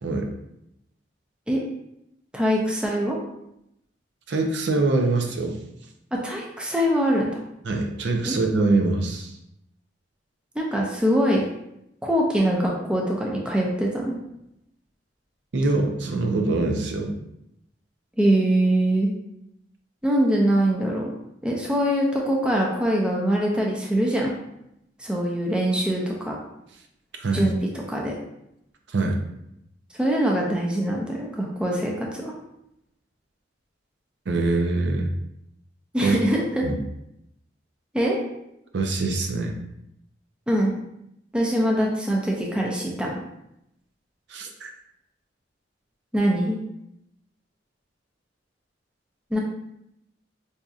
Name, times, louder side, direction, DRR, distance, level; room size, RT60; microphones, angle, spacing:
voice 1, 2.3-3.2 6.1-7.4 8.3-8.4 10.6-11.4 12.0-14.2 18.2-19.1 20.0-21.1 21.4-24.3 25.0-26.4 27.3-27.6 27.9-28.1 29.9-32.3 35.9-36.6 37.9-38.2 40.5-40.7 41.3-43.2 46.1-46.6 49.3-49.4, right 1 dB, 5° right, -2 dB, 0.4 m, -23 dB
voice 2, 4.3-5.6 7.6-9.3 15.5-17.2 27.2-27.5 28.9-29.2 34.3-35.1 36.0-36.2 36.6-36.8 38.7-39.6 44.3-44.7, right 3 dB, 65° right, 3 dB, 0.5 m, -24 dB
4.8 x 2.7 x 2.3 m, 0.82 s
head